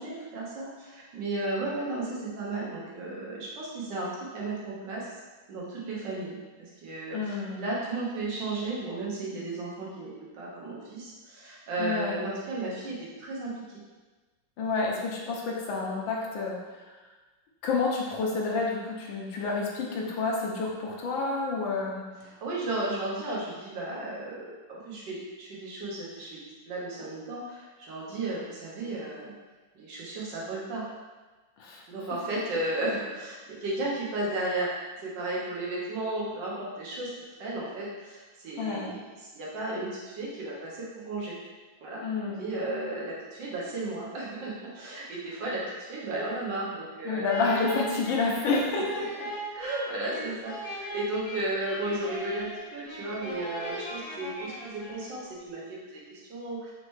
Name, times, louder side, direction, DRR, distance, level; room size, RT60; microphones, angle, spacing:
voice 1, 0.0-4.1 4.3-5.1 5.5-13.5 22.2-26.4 26.7-29.4 29.7-30.8 31.9-34.7 35.0-37.1 37.4-39.1 39.3-41.4 41.8-47.3 48.2-48.3 49.5-56.7, right 2 dB, 70° right, -5 dB, 1.5 m, -34 dB
voice 2, 7.1-7.6 11.8-12.2 14.6-16.6 17.6-22.3 31.6-31.8 38.6-39.0 42.0-42.4 47.0-49.0, left 3 dB, 85° left, -2 dB, 1.5 m, -29 dB
sound 1, 47.2-55.3, equal, 35° left, 0.6 m, -39 dB
4.4 x 2.8 x 3.1 m, 1.3 s
omnidirectional pair, 2.1 m